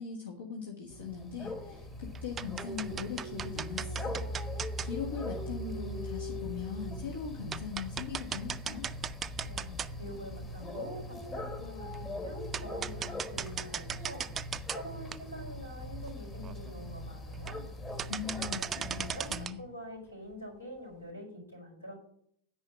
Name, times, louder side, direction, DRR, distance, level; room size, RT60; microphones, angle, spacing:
voice 1, 0.0-4.3 4.8-8.9 18.1-18.6 18.9-19.6, left 6 dB, 70° left, -1 dB, 1.4 m, -40 dB
sound 1, 0.9-19.5, left 1 dB, 20° left, 1.4 m, -41 dB
sound 2, 1.4-1.8 2.1-4.9 6.0-6.1 6.6-6.7 7.1-7.2 7.5-10.2 10.6-10.7 11.9-12.0 12.5-14.8 15.1-15.2 15.7-15.8 16.1-16.2 16.4-16.7 17.3-17.7 18.0-19.6, right 8 dB, 20° right, 0.3 m, -38 dB
voice 2, 9.4-14.3 14.7-17.6 18.4-21.9, equal, 85° left, -1 dB, 4.8 m, -46 dB
9.6 x 5.1 x 7.3 m, 0.69 s
figure-of-eight pair, 90°, 0 cm